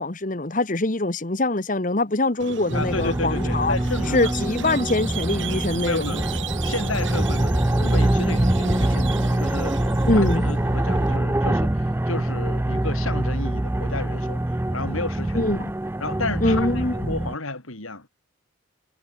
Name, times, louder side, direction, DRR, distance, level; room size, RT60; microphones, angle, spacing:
voice 1, 0.0-3.8 4.1-6.2 10.1-10.4 15.3-15.6 16.4-17.0, left 2 dB, 40° left, 1.3 m, -23 dB
Squeak, 2.4-11.2, right 5 dB, 65° right, 5.3 m, -36 dB
voice 2, 2.7-4.3 4.6-4.7 5.8-6.2 6.6-14.4 14.7-15.6 16.0-18.1, left 2 dB, 85° left, 6.4 m, -32 dB
sound 1, 2.7-17.3, right 1 dB, 10° right, 0.4 m, -24 dB
head